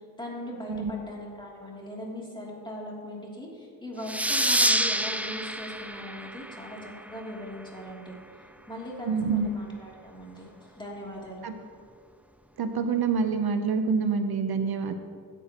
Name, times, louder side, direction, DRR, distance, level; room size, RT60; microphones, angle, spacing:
voice 1, 0.2-8.2 8.7-11.5, left 1 dB, 10° left, -4 dB, 2.8 m, -39 dB
sound 1, 4.1-7.3, right 1 dB, 5° right, 0.4 m, -27 dB
voice 2, 9.1-9.5 11.4-11.5 12.6-14.9, right 5 dB, 75° right, 8 dB, 0.8 m, -26 dB
15.5 x 9.9 x 3.0 m, 2.1 s
wide cardioid pair, 85°, 38 cm